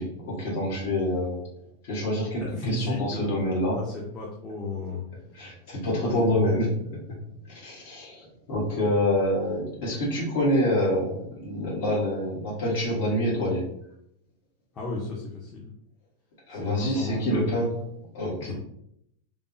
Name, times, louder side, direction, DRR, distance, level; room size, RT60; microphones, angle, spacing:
voice 1, 0.0-1.4 1.9-3.8 5.4-6.6 7.6-13.6 16.5-17.7 18.1-18.5, equal, 60° left, -6 dB, 1.3 m, -26 dB
voice 2, 2.4-5.0 5.9-6.5 14.7-15.7 16.5-17.5 18.4-18.5, left 3 dB, 30° left, -4 dB, 0.6 m, -33 dB
3.2 x 2.0 x 2.6 m, 0.74 s
supercardioid pair, 130°, 0 cm